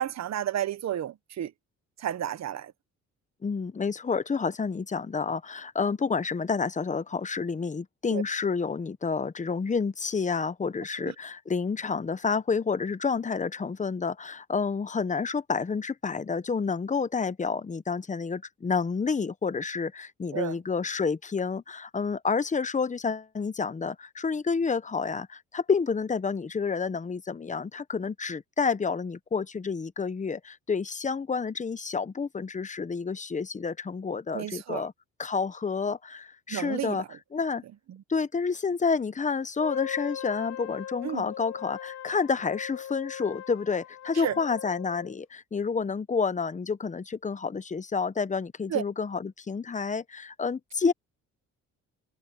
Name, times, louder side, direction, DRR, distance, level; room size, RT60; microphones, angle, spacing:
voice 1, 0.0-1.5 2.0-2.7 8.1-8.2 11.0-11.1 20.3-20.5 34.3-34.8 36.5-37.0 41.0-41.2 44.2-44.3 48.7-48.8, right 11 dB, 60° right, 1.2 m, -31 dB
voice 2, 3.4-34.9 35.2-37.0 37.3-37.6 38.1-50.9, left 5 dB, 25° left, 1.0 m, -29 dB
Wind instrument woodwind instrument, 39.6-45.2, left 10 dB, 60° left, 0.7 m, -40 dB
cardioid pair, 90°, 30 cm